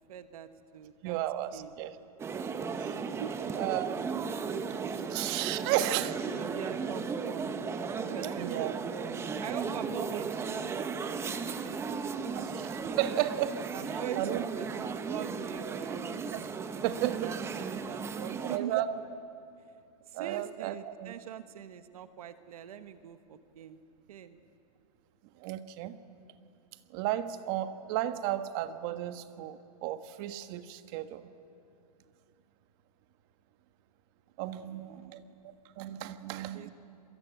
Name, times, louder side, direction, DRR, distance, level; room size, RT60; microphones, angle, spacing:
voice 1, 0.1-1.2 1.5-1.7 3.1-3.6 4.5-4.6 4.9-5.1 5.5-7.5 8.1-10.3 10.6-11.3 11.6-12.5 13.7-16.5 17.1-18.8 20.1-23.8 24.1-24.4 34.5-35.2 36.5-36.7, right 9 dB, 65° right, 10 dB, 1.4 m, -43 dB
voice 2, 1.0-1.9 2.8-3.0 3.6-4.0 5.1-6.1 8.4-8.7 12.3-13.6 13.9-14.4 16.3-16.4 16.8-17.3 18.4-19.0 20.1-21.1 25.4-26.0 26.9-31.3 34.4-35.2 35.8-36.7, right 13 dB, 40° right, 10 dB, 1.4 m, -33 dB
sound 1, 2.2-18.6, right 5 dB, 15° right, 1.1 m, -35 dB
27.5 x 22.0 x 9.4 m, 2.5 s
hypercardioid pair, 145°, 20 cm